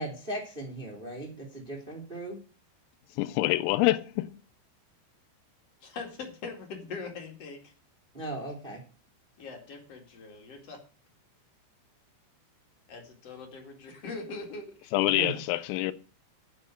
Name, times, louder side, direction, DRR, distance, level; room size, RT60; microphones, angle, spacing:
voice 1, 0.0-2.4 8.1-8.8 15.1-15.3, right 1 dB, 90° right, 0.4 m, -37 dB
voice 2, 3.2-4.3 14.9-15.9, left 17 dB, 90° left, 3.3 m, -26 dB
voice 3, 5.8-7.7 9.4-10.8 12.9-14.9, left 4 dB, 45° left, 2.3 m, -41 dB
8.5 x 6.5 x 7.7 m
omnidirectional pair, 5.9 m